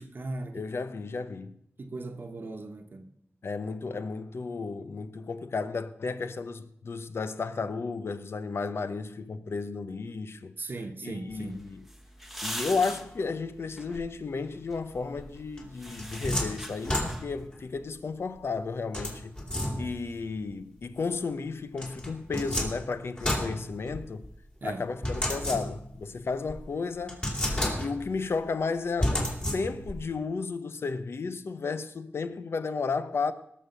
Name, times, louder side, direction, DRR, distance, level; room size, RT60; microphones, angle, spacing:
voice 1, 0.0-0.7 1.8-3.1 10.6-11.6 24.6-24.9, right 2 dB, 50° right, 1.1 m, -38 dB
voice 2, 0.5-1.5 3.4-10.5 11.0-11.9 12.4-19.4 19.8-24.3 24.6-27.2 27.5-33.3, left 4 dB, 65° left, 0.8 m, -33 dB
sound 1, 11.3-17.5, equal, 5° right, 1.1 m, -43 dB
sound 2, 15.6-17.5 18.9-20.1 21.8-24.3 25.0-26.0 26.5-26.6 27.1-28.2 29.0-30.0, left 1 dB, 25° left, 3.0 m, -31 dB
19.0 x 6.6 x 6.7 m
wide cardioid pair, 95°, 5 cm